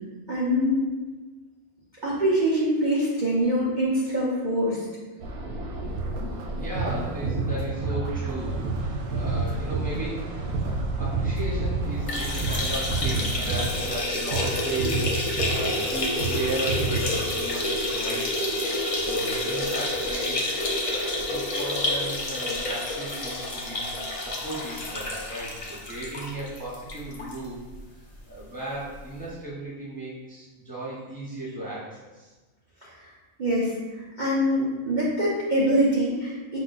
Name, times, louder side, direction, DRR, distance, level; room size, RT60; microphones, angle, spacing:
voice 1, 0.3-0.8 2.0-4.8 32.8-33.1 33.4-36.6, equal, 40° right, -7 dB, 0.8 m, -24 dB
sound 1, 5.2-14.0, right 2 dB, 90° right, 1.2 m, -33 dB
sound 2, 6.0-12.6 12.9-14.0 14.3-14.5 14.8-15.9 16.2-16.4 16.7-17.1, right 4 dB, 70° right, 0.9 m, -29 dB
voice 2, 6.5-15.1 15.5-18.5 19.0-20.4 20.9-27.6 28.3-32.3, right 1 dB, 5° left, -7 dB, 0.8 m, -36 dB
sound 3, 12.0-27.4 27.7-27.8 28.1-28.2 29.2-29.3, left 1 dB, 60° left, 0.3 m, -29 dB
5.9 x 2.2 x 4.0 m, 1.2 s
omnidirectional pair, 1.5 m